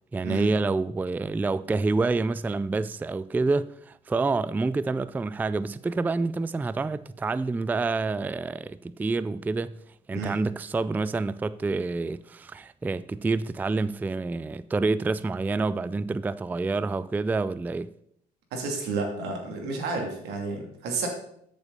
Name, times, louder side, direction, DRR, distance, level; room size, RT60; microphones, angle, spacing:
voice 1, 0.1-9.8 10.1-17.9, right 3 dB, 10° right, 0.3 m, -28 dB
voice 2, 18.5-21.1, right 3 dB, 85° right, 2.9 m, -31 dB
13.5 x 7.1 x 4.1 m
cardioid pair, 110°, 17 cm